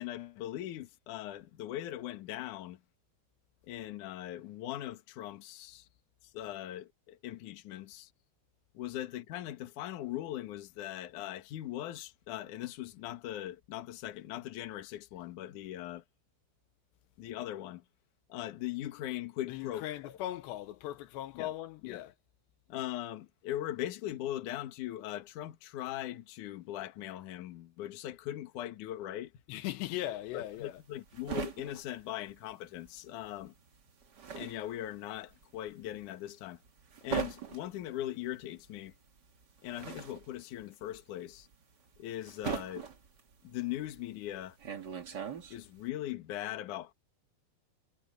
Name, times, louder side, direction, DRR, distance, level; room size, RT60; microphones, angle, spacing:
voice 1, 0.0-2.8 3.7-5.9 6.3-8.1 8.7-16.0 17.2-17.8 18.3-20.2 21.3-21.5 21.8-22.0 22.7-29.3 30.3-33.5 34.4-36.6 37.0-38.9 39.6-41.5 42.0-42.9 43.4-44.6 45.5-46.9, left 13 dB, 60° left, 2.4 m, -40 dB
voice 2, 19.5-22.1 29.5-30.8, left 14 dB, 80° left, 3.0 m, -39 dB
sound 1, 30.4-33.0 33.2-45.9, right 6 dB, 65° right, 1.0 m, -41 dB
omnidirectional pair, 5.0 m